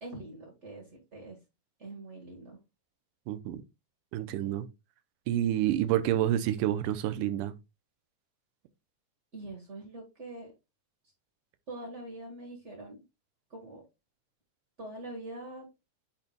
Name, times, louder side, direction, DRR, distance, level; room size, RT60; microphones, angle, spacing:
voice 1, 0.0-1.4 1.8-2.6 9.3-10.5 11.7-13.0 13.5-13.8 14.8-15.7, right 2 dB, 55° right, 0.7 m, -43 dB
voice 2, 3.3-3.6 4.1-4.7 5.3-7.5, right 12 dB, 90° right, 2.2 m, -28 dB
8.3 x 5.2 x 2.2 m
omnidirectional pair, 3.7 m